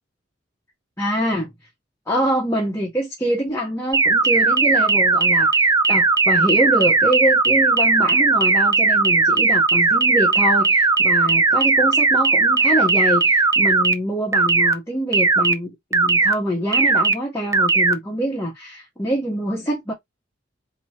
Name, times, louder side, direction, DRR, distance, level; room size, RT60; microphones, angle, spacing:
voice 1, 1.0-1.5 2.1-19.9, equal, 15° left, 1.1 m, -24 dB
sound 1, 3.9-13.9 14.3-14.7 15.1-15.5 15.9-16.3 16.7-17.1 17.5-17.9, right 3 dB, 15° right, 0.4 m, -17 dB
2.9 x 2.8 x 4.4 m
head